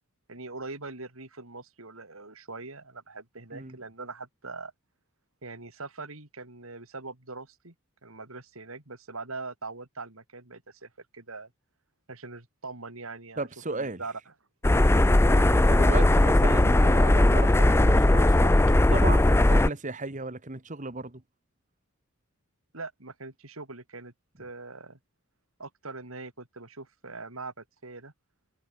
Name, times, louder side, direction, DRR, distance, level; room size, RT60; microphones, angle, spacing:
voice 1, 0.3-4.7 5.4-7.7 8.0-11.5 12.1-14.2 22.7-24.1 24.4-25.0 25.6-28.1, right 3 dB, 80° right, 4.0 m, -42 dB
voice 2, 13.4-14.0 15.2-21.2, right 2 dB, 35° right, 1.7 m, -35 dB
sound 1, 14.6-19.7, left 1 dB, 10° left, 0.4 m, -19 dB
head